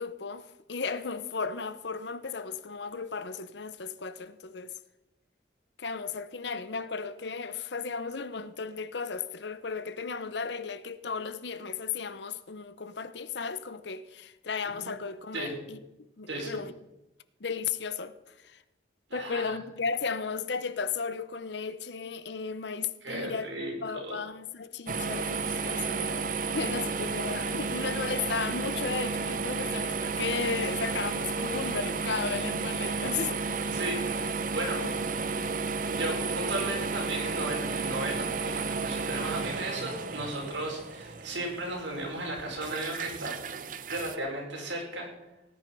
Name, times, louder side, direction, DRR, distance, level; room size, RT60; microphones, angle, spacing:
voice 1, 0.0-4.7 5.8-15.8 16.2-16.7 17.4-18.6 19.1-33.4 34.5-35.4, left 5 dB, 65° left, 0.8 m, -35 dB
voice 2, 19.1-19.5 23.0-23.8 24.0-24.2 33.7-34.8 35.9-43.3 43.9-45.1, right 1 dB, 80° right, 5.2 m, -35 dB
sound 1, 24.9-44.2, right 4 dB, 45° right, 0.8 m, -32 dB
18.0 x 9.5 x 5.4 m
head